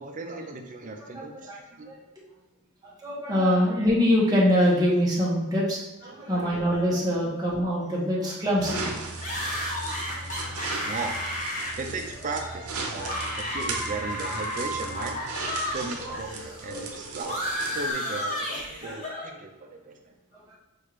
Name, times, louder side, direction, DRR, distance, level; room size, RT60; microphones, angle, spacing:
voice 1, 0.0-1.9 6.1-6.5 7.2-7.3 10.8-11.2 11.8-15.2 15.7-17.4 17.7-20.1, right 3 dB, 35° right, 4 dB, 0.5 m, -36 dB
voice 2, 1.1-1.6 1.8-2.0 2.8-8.9 10.1-10.9 12.9-13.0 16.0-16.2 18.8-19.0 20.3-20.6, equal, 15° right, -6 dB, 0.9 m, -25 dB
sound 1, 8.6-17.9, right 3 dB, 80° right, 0.7 m, -37 dB
sound 2, 9.2-15.8 16.1-19.3, equal, 35° left, 1.0 m, -33 dB
6.2 x 2.4 x 3.1 m, 1.1 s
head